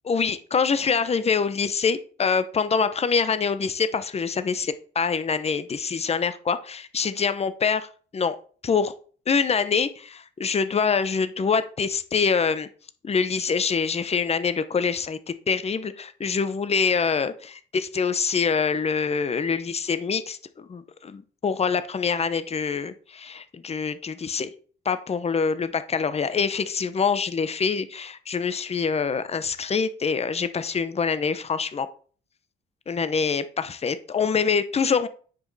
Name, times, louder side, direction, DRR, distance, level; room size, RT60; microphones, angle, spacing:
voice 1, 0.1-8.4 8.6-9.0 9.3-12.7 13.0-24.5 24.8-31.9 32.9-35.1, left 5 dB, 30° left, 12 dB, 0.8 m, -25 dB
9.5 x 5.2 x 4.1 m, 0.42 s
cardioid pair, 90°, 20 cm